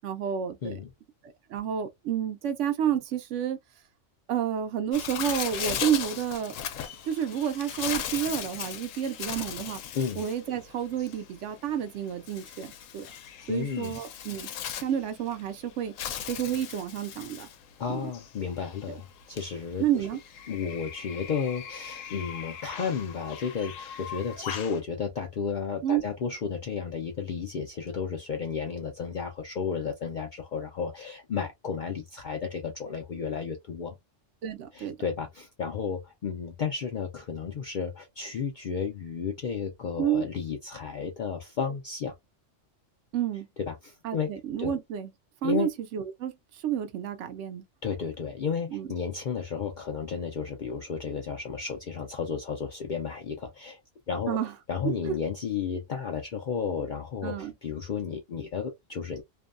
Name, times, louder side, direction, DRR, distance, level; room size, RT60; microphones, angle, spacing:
voice 1, 0.0-0.8 1.2-3.6 4.3-6.6 7.0-9.8 10.2-13.1 13.5-14.5 14.7-15.9 16.3-17.5 17.9-18.1 18.9-19.0 19.8-20.2 25.8-26.0 34.4-35.0 40.0-40.2 43.1-43.5 44.0-45.1 45.4-47.6 48.7-48.9 54.3-54.5 54.8-55.2 57.2-57.5, right 9 dB, 75° right, 0.9 m, -30 dB
Bird, 4.9-24.8, left 9 dB, 85° left, 0.9 m, -38 dB
voice 2, 13.5-14.0 17.8-19.8 20.5-34.0 34.7-42.1 43.6-44.3 44.6-44.7 45.4-45.7 47.8-53.8 54.1-54.4 54.7-59.2, left 6 dB, 65° left, 0.5 m, -33 dB
2.6 x 2.2 x 2.4 m
omnidirectional pair, 1.3 m